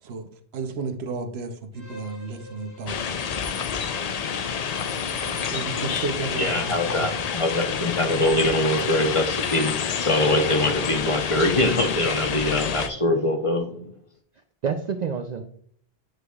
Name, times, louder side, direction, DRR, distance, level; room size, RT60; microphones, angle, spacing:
voice 1, 0.5-3.3 5.5-7.1, right 3 dB, 85° right, 1.0 m, -33 dB
Bowed string instrument, 1.7-9.4, equal, 85° left, 3.1 m, -45 dB
sound 1, 2.9-12.9, left 7 dB, 50° left, 0.5 m, -28 dB
voice 2, 4.9-5.3 14.6-15.4, right 6 dB, 55° right, 0.5 m, -29 dB
voice 3, 6.4-9.8 10.0-13.9, left 1 dB, 35° left, 0.9 m, -23 dB
9.3 x 4.8 x 2.3 m
omnidirectional pair, 1.0 m